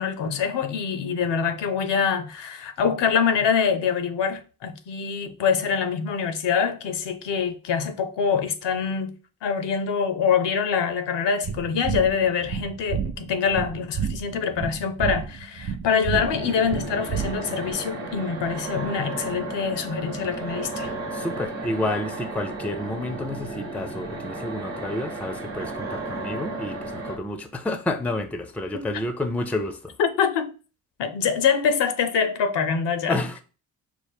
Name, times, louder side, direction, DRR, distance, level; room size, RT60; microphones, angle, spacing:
voice 1, 0.0-9.1 9.4-20.9 28.7-28.9 30.0-30.5 31.0-33.2, left 6 dB, 70° left, 0.7 m, -25 dB
sound 1, 11.4-17.7, right 7 dB, 55° right, 0.7 m, -30 dB
sound 2, 16.1-27.2, right 2 dB, 75° right, 1.0 m, -34 dB
voice 2, 21.1-29.9 33.1-33.4, left 1 dB, 5° left, 0.5 m, -30 dB
4.7 x 2.0 x 3.4 m
supercardioid pair, 50°, 45 cm